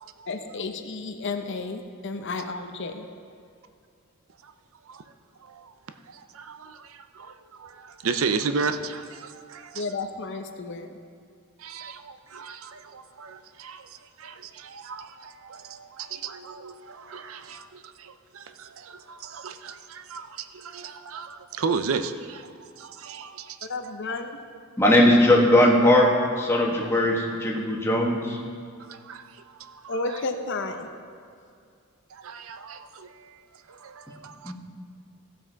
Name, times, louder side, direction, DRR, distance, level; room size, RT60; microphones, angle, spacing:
voice 1, 0.3-3.1 9.7-11.0 23.7-24.4 29.9-30.9, left 3 dB, 60° left, 6 dB, 0.7 m, -32 dB
voice 2, 5.4-5.7 6.1-9.8 11.6-23.6 28.9-29.3 29.6-30.2 32.1-33.4 33.7-34.5, right 5 dB, 70° right, 9 dB, 0.5 m, -35 dB
voice 3, 24.8-26.1 26.4-28.4 34.4-34.5, left 1 dB, 10° left, -2 dB, 1.3 m, -19 dB
16.0 x 6.1 x 4.6 m, 2.3 s
head